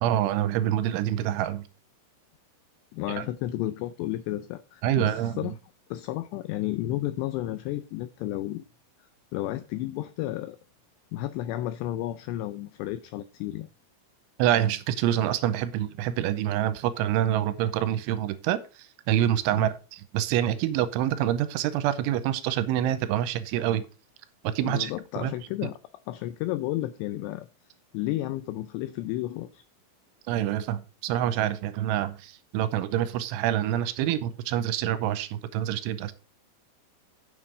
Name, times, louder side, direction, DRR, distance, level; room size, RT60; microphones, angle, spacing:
voice 1, 0.0-1.7 3.2-3.3 4.8-5.5 14.4-18.6 19.1-23.9 24.4-24.9 25.2-25.3 30.3-36.1, right 11 dB, 90° right, 3.1 m, -26 dB
voice 2, 2.9-5.5 5.9-8.6 9.3-10.6 11.1-13.7 19.5-19.7 24.6-25.8 26.1-27.5 27.9-29.6, left 15 dB, 90° left, 2.4 m, -32 dB
9.3 x 6.5 x 4.9 m
omnidirectional pair, 5.5 m